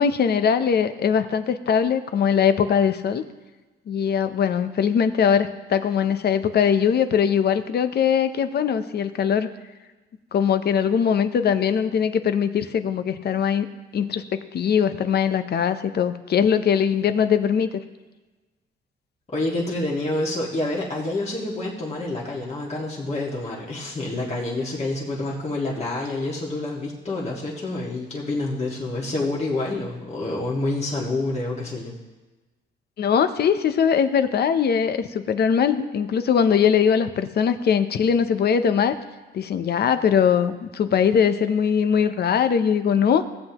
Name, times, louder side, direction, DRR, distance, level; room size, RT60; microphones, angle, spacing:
voice 1, 0.0-3.2 3.9-9.5 10.3-13.7 13.9-17.7 33.0-38.9 39.3-43.2, left 7 dB, 55° left, 10 dB, 0.7 m, -21 dB
voice 2, 19.3-32.0, left 2 dB, 35° left, -4 dB, 1.8 m, -28 dB
16.5 x 7.8 x 3.0 m, 1.2 s
cardioid pair, 90°, 20 cm